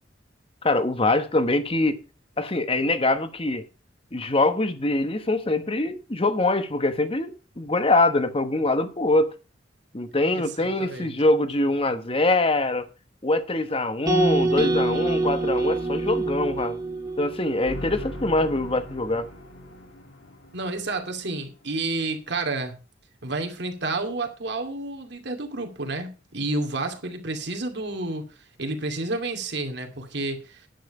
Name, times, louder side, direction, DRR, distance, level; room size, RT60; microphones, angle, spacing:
voice 1, 0.6-2.0 2.4-3.6 4.1-9.3 9.9-12.9 13.2-16.8 17.2-19.3, left 2 dB, 30° left, 1.1 m, -23 dB
voice 2, 10.3-11.1 20.5-22.7 23.2-28.2 28.6-30.7, right 2 dB, 60° right, 2.5 m, -30 dB
sound 1, 14.1-18.2, right 2 dB, 20° right, 1.7 m, -25 dB
sound 2, 17.7-21.7, left 1 dB, 70° left, 2.5 m, -40 dB
10.5 x 9.2 x 4.9 m
head